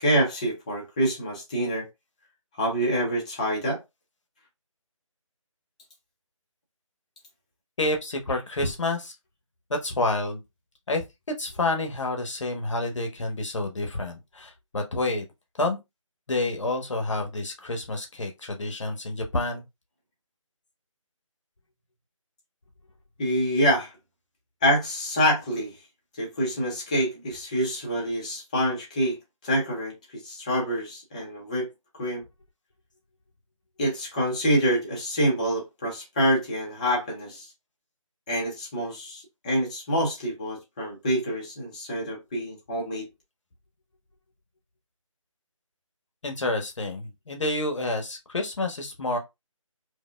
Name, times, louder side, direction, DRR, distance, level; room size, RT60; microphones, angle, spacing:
voice 1, 0.0-1.9 2.6-3.8 23.2-23.9 24.6-25.7 26.2-29.2 29.4-31.7 32.0-32.2 33.8-37.5 38.3-43.1, equal, 15° left, 0.7 m, -26 dB
voice 2, 7.8-9.1 9.7-10.4 10.9-11.0 11.4-15.2 15.6-15.8 16.3-19.6 46.2-49.2, left 2 dB, 60° left, 1.1 m, -28 dB
4.8 x 2.2 x 2.3 m
figure-of-eight pair, 165°, 17 cm